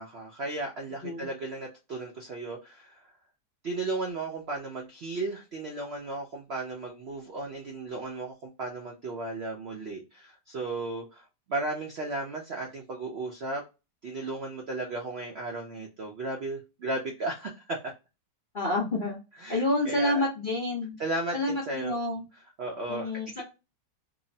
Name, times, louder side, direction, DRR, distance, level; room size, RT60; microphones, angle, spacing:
voice 1, 0.0-3.0 3.6-11.2 11.5-13.6 14.0-17.8 19.4-20.2 21.0-22.0 22.6-23.1, right 2 dB, 85° right, 0 dB, 0.5 m, -35 dB
voice 2, 18.5-19.2 19.5-20.9 21.3-22.3 22.9-23.4, left 2 dB, 55° left, -4 dB, 0.5 m, -28 dB
2.9 x 2.0 x 2.6 m, 0.27 s
omnidirectional pair, 1.9 m